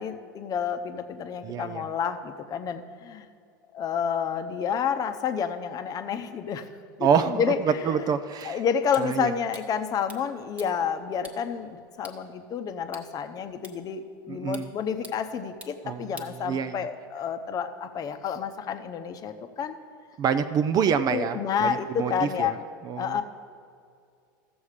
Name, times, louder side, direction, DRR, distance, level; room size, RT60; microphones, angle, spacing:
voice 1, 0.0-3.3 3.7-6.7 7.3-8.0 8.4-14.0 14.3-19.8 21.1-22.6 22.9-23.2, left 7 dB, 35° left, 8 dB, 0.8 m, -29 dB
voice 2, 1.4-1.8 7.0-8.6 9.0-9.3 14.3-14.7 15.8-16.9 20.2-22.5 22.8-23.2, right 7 dB, 35° right, 10 dB, 0.5 m, -27 dB
sound 1, 8.4-17.0, right 1 dB, 10° right, 1.3 m, -51 dB
14.5 x 7.1 x 4.9 m, 2.3 s
hypercardioid pair, 105°, 11 cm